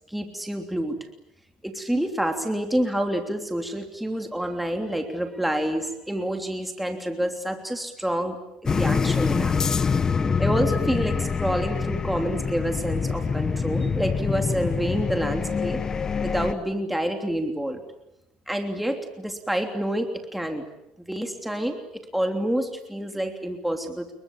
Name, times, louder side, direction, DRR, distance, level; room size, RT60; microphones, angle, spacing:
voice 1, 0.1-1.0 1.6-8.4 8.6-9.6 10.4-15.8 16.2-17.8 18.5-20.6 21.1-21.8 22.1-24.1, right 1 dB, 5° right, 4 dB, 3.1 m, -28 dB
sound 1, 8.7-16.5, left 5 dB, 30° left, 1.2 m, -25 dB
28.5 x 23.0 x 8.7 m, 0.84 s
cardioid pair, 115°, 2 cm